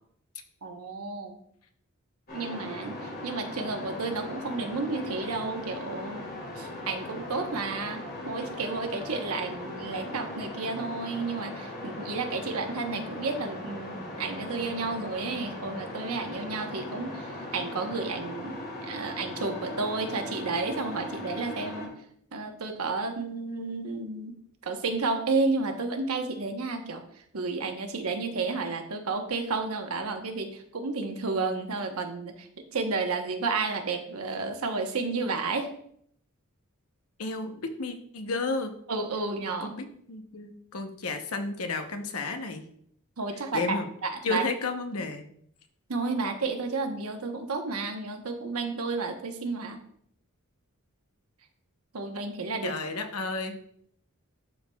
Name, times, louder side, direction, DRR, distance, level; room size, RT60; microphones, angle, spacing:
voice 1, 0.6-1.4 2.3-6.3 6.6-21.9 22.3-24.4 24.6-27.0 27.3-35.7 38.9-39.7 43.2-44.4 45.9-49.8 51.9-52.7, right 3 dB, 80° right, 5 dB, 1.0 m, -32 dB
sound 1, 2.3-21.9, left 1 dB, 45° left, 2.1 m, -39 dB
voice 2, 37.2-38.7 39.6-42.7 43.5-43.9 44.2-45.2 52.6-53.5, left 3 dB, 75° left, 6 dB, 0.8 m, -32 dB
12.0 x 4.6 x 2.3 m, 0.67 s
head